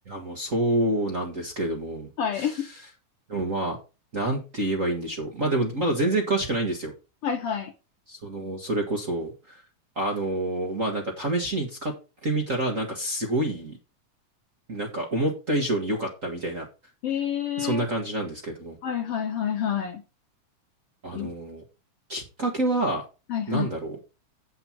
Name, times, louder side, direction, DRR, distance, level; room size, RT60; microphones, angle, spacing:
voice 1, 0.1-2.6 3.3-3.8 4.1-6.9 8.1-9.6 9.9-11.9 12.2-13.8 14.7-16.7 17.6-18.8 21.0-21.6 22.1-23.0 23.5-24.0, right 1 dB, 35° right, 1 dB, 1.5 m, -27 dB
voice 2, 2.2-2.7 7.2-7.7 17.0-17.8 18.8-20.0 21.1-21.3 23.3-23.7, left 8 dB, 65° left, 4 dB, 1.7 m, -28 dB
8.0 x 8.0 x 4.5 m, 0.30 s
omnidirectional pair, 3.4 m